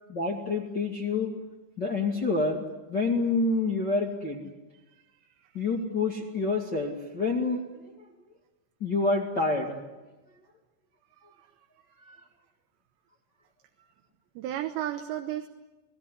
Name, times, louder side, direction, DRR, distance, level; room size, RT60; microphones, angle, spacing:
voice 1, 0.1-1.3 1.8-4.5 5.5-8.0 8.8-9.8 12.0-12.2, left 3 dB, 35° left, -1 dB, 1.9 m, -28 dB
voice 2, 14.4-15.5, right 12 dB, 75° right, 6 dB, 3.2 m, -34 dB
28.5 x 18.5 x 9.9 m, 1.1 s
omnidirectional pair, 5.3 m